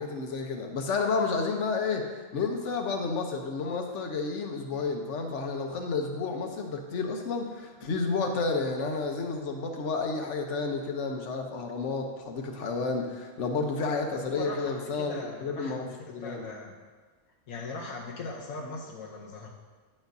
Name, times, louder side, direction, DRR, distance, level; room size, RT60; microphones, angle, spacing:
voice 1, 0.0-16.4, left 4 dB, 60° left, 3 dB, 1.2 m, -31 dB
voice 2, 14.1-16.8 17.5-19.5, left 3 dB, 85° left, -2 dB, 1.2 m, -40 dB
9.9 x 7.2 x 2.7 m, 1.5 s
omnidirectional pair, 1.5 m